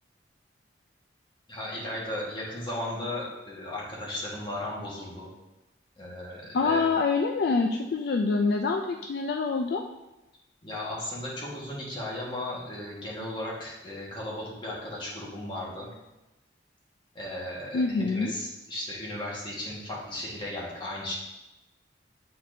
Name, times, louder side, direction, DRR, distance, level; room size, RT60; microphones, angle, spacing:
voice 1, 1.5-5.3 6.0-6.8 10.6-15.9 17.1-21.2, left 1 dB, 25° left, -6 dB, 1.6 m, -36 dB
voice 2, 6.5-9.8 17.7-18.3, left 4 dB, 55° left, 4 dB, 0.3 m, -26 dB
8.4 x 4.1 x 2.7 m, 1.0 s
head